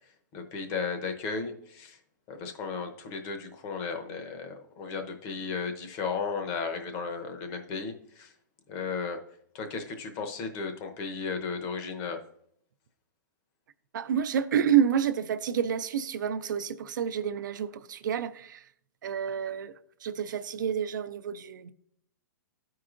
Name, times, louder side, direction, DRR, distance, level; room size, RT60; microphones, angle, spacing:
voice 1, 0.3-2.0 2.3-8.3 8.7-9.2 9.5-12.2, left 5 dB, 35° left, 0.8 m, -35 dB
voice 2, 13.9-18.7 19.0-19.7 20.0-21.7, right 8 dB, 80° right, 0.5 m, -29 dB
13.0 x 4.7 x 2.5 m
hypercardioid pair, 150°, 10 cm